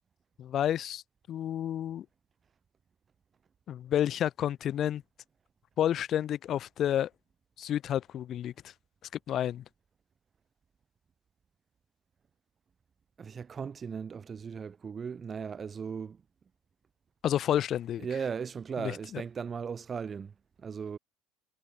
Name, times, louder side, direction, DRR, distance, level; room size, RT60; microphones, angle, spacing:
voice 1, 0.4-1.0 1.3-2.0 3.7-5.0 5.8-7.1 7.6-8.7 9.3-9.6 17.2-18.1 18.8-19.2, left 10 dB, 40° left, 4.4 m, -30 dB
voice 2, 13.2-16.2 18.0-20.3 20.6-21.0, right 6 dB, 25° right, 3.6 m, -37 dB
cardioid pair, 140°, 0 cm